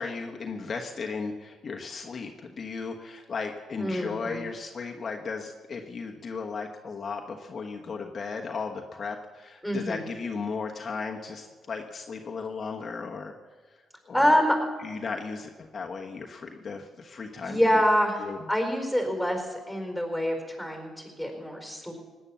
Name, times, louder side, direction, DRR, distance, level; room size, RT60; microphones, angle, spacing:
voice 1, 0.0-13.3 14.0-14.4 14.8-17.7 18.2-18.5, left 4 dB, 45° left, 2 dB, 1.2 m, -35 dB
voice 2, 3.8-4.4 9.6-10.0 14.1-14.5 17.4-21.9, equal, 5° right, 3 dB, 4.4 m, -26 dB
18.0 x 9.9 x 7.2 m, 1.4 s
cardioid pair, 90°, 0 cm